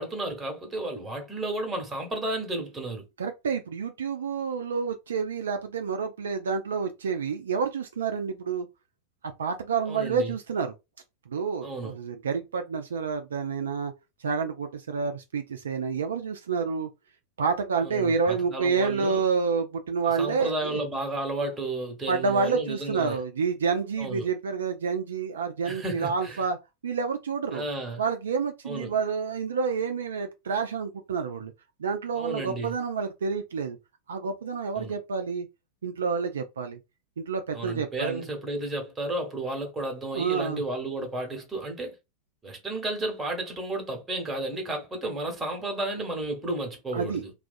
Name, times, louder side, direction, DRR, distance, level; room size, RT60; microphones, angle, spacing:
voice 1, 0.0-3.1 9.9-10.3 11.6-11.9 17.8-19.2 20.2-23.2 24.0-24.3 25.6-26.4 27.5-28.0 28.6-28.9 32.2-32.7 34.7-35.0 37.5-41.9 42.4-47.3, right 2 dB, 10° right, 1.0 m, -32 dB
voice 2, 3.2-8.7 9.4-10.7 11.3-13.9 14.2-16.9 17.4-20.8 22.1-26.6 26.8-27.7 28.0-31.5 31.8-33.8 34.1-35.5 35.8-36.8 37.2-38.2 40.1-40.6 46.9-47.2, right 5 dB, 65° right, 0.3 m, -28 dB
2.3 x 2.3 x 2.5 m
figure-of-eight pair, 90°, 0 cm